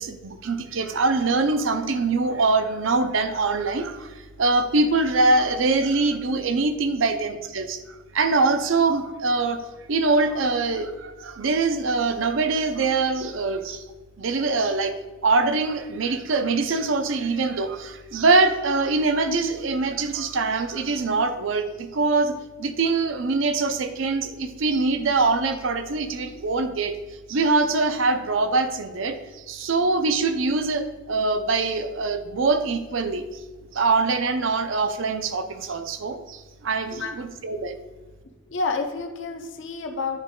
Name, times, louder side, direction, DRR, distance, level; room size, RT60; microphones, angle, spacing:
voice 1, 0.0-7.8 8.1-9.6 9.9-13.8 14.2-14.9 15.2-26.9 27.3-33.2 33.7-37.8, right 3 dB, 70° right, 9 dB, 0.6 m, -23 dB
voice 2, 38.5-40.2, left 4 dB, 60° left, 3 dB, 0.8 m, -29 dB
9.8 x 4.0 x 3.7 m, 1.2 s
head